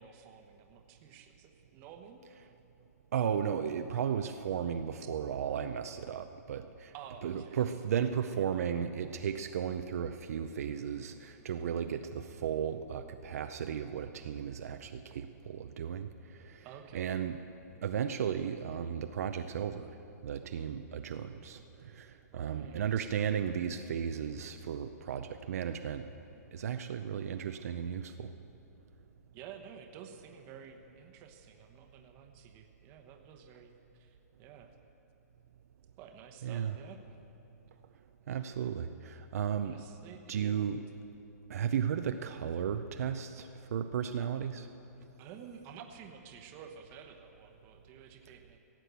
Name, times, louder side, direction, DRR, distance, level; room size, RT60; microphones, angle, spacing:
voice 1, 0.0-2.2 6.9-7.6 16.6-17.2 22.3-23.1 29.3-34.7 36.0-37.0 39.6-40.7 45.2-48.6, right 7 dB, 25° right, 5 dB, 1.0 m, -51 dB
voice 2, 3.1-6.9 7.2-16.7 16.9-17.4 17.8-19.9 20.2-26.1 26.5-28.3 36.4-36.7 38.3-39.8 40.3-40.8 41.5-44.7, right 8 dB, 60° right, 7 dB, 0.6 m, -35 dB
16.5 x 7.6 x 8.1 m, 2.8 s
hypercardioid pair, 165°, 9 cm